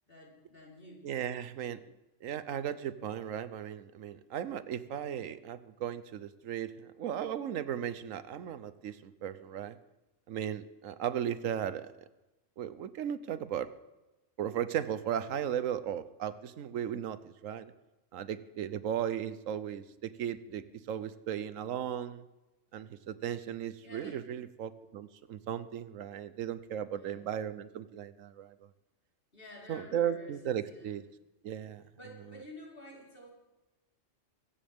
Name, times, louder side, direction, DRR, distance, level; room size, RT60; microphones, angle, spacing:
voice 1, 0.1-1.0 23.8-24.2 26.9-27.3 29.3-30.9 32.0-33.3, left 1 dB, 45° left, -4 dB, 4.6 m, -51 dB
voice 2, 1.0-1.8 2.2-9.8 10.3-11.9 12.6-13.7 14.4-17.7 18.1-22.3 22.7-28.7 29.7-31.0 31.4-31.8, right 9 dB, 85° right, 13 dB, 1.2 m, -36 dB
23.5 x 14.0 x 3.6 m, 1.0 s
omnidirectional pair, 1.3 m